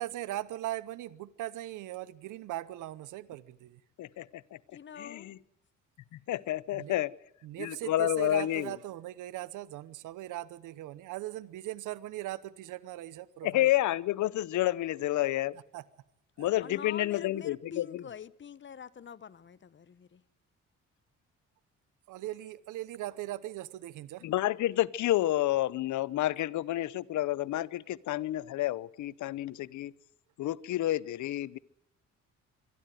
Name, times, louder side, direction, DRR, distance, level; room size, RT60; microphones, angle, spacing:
voice 1, 0.0-3.8 6.7-7.0 7.4-13.7 15.7-15.8 16.4-16.5 22.1-24.2, right 15 dB, 85° right, 0.9 m, -39 dB
voice 2, 4.0-4.6 5.0-5.4 6.1-7.1 7.6-8.7 13.4-15.6 16.4-18.0 24.2-29.9 30.4-31.6, left 14 dB, 75° left, 0.8 m, -30 dB
voice 3, 4.7-5.3 16.6-20.2, left 7 dB, 40° left, 1.0 m, -46 dB
25.0 x 12.0 x 9.2 m
cardioid pair, 90°, 30 cm